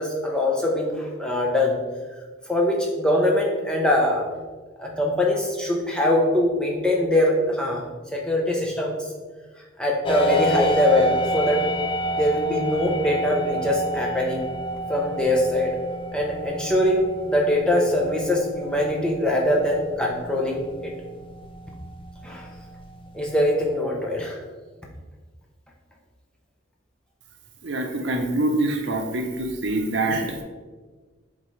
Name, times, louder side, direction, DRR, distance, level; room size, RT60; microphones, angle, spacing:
voice 1, 0.0-1.8 2.5-4.3 4.8-7.8 8.1-9.1 9.8-11.7 12.1-14.5 14.9-15.8 16.1-20.9 22.2-22.5 23.1-24.4, left 1 dB, 5° left, -2 dB, 0.8 m, -22 dB
sound 1, 10.1-23.7, right 1 dB, 25° left, 0.3 m, -30 dB
voice 2, 27.6-30.4, right 2 dB, 65° right, 3 dB, 0.8 m, -25 dB
7.3 x 4.0 x 3.3 m, 1.4 s
head